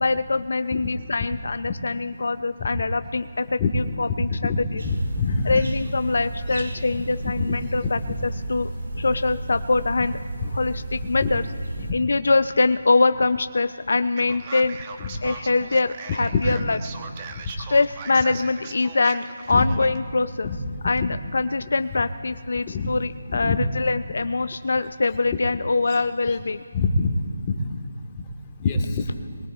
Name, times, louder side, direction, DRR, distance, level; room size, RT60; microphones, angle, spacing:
voice 1, 0.0-4.5 5.4-8.7 9.0-10.2 10.5-11.4 11.9-14.8 15.2-16.8 17.6-20.5 20.8-26.6, left 3 dB, 70° left, 11 dB, 0.4 m, -23 dB
voice 2, 4.2-4.6 4.8-5.6 7.4-7.5 8.0-8.1 9.0-9.1 10.4-10.5 11.2-11.3 11.8-11.9 16.3-16.4 19.5-19.6 20.4-20.6 20.8-21.1 22.7-22.9 23.3-23.6 26.3-26.4 26.7-27.1 27.5-27.6 28.6-29.1, left 4 dB, 25° left, 3 dB, 1.4 m, -25 dB
sound 1, 4.8-11.9, right 2 dB, 80° right, 1.9 m, -33 dB
Male speech man speaking, 14.2-20.0, right 5 dB, 30° right, 0.9 m, -39 dB
22.5 x 21.5 x 2.4 m, 2.1 s
figure-of-eight pair, 165°, 0 cm